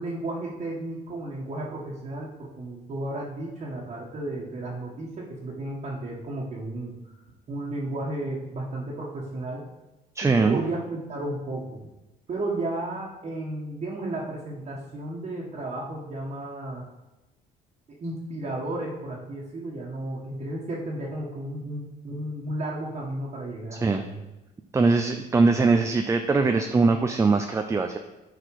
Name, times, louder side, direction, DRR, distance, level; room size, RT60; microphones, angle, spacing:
voice 1, 0.0-6.9 7.5-9.7 10.2-11.9 12.3-16.8 18.0-24.2, right 2 dB, 40° right, -6 dB, 1.6 m, -33 dB
voice 2, 10.2-10.6 23.7-24.0 24.7-28.0, right 4 dB, 15° right, 6 dB, 0.5 m, -21 dB
9.8 x 4.9 x 4.9 m, 1.0 s
cardioid pair, 110°, 17 cm